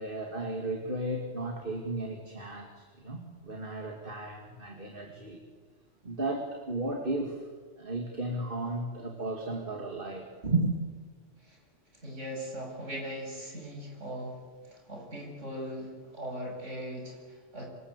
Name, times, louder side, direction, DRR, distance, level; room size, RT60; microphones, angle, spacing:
voice 1, 0.0-5.4 6.0-7.5 7.8-10.7, right 2 dB, 45° right, 3 dB, 2.7 m, -34 dB
voice 2, 11.9-14.4 14.7-17.7, equal, 75° right, 1 dB, 8.0 m, -39 dB
26.5 x 26.5 x 8.4 m, 1.5 s
omnidirectional pair, 1.3 m